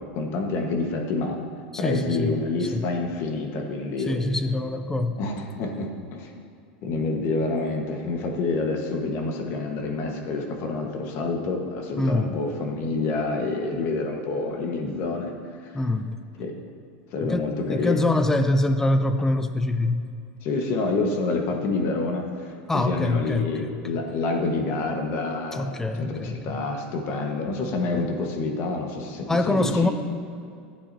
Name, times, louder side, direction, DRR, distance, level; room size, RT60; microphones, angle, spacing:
voice 1, 0.0-1.4 1.8-4.2 5.2-6.3 6.8-15.3 15.6-15.8 16.4-16.6 17.1-18.0 20.4-29.9, left 3 dB, 50° left, 2 dB, 1.4 m, -28 dB
voice 2, 1.7-2.9 4.1-5.2 12.0-12.4 15.7-16.2 17.2-20.1 22.7-23.8 25.5-26.6 29.3-29.9, left 2 dB, 10° left, 9 dB, 0.5 m, -25 dB
15.0 x 8.3 x 2.8 m, 2.4 s
supercardioid pair, 125°, 5 cm